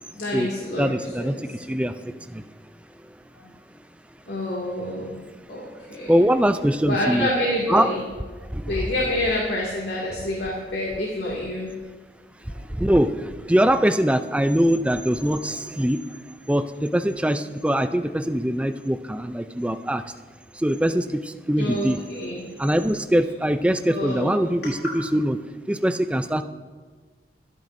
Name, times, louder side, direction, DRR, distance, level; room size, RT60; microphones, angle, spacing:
voice 1, 0.1-1.6 3.3-3.5 4.3-5.1 5.5-6.1 6.8-8.0 8.7-11.7 12.5-12.7 21.6-22.4 23.9-24.8, left 1 dB, 70° left, -4 dB, 2.3 m, -28 dB
voice 2, 0.8-2.4 6.1-7.3 7.7-7.9 8.5-8.7 12.5-16.2 16.5-20.0 20.5-22.0 22.6-25.4 25.7-26.4, equal, 5° right, 9 dB, 0.4 m, -22 dB
24.0 x 10.5 x 2.7 m, 1.4 s
head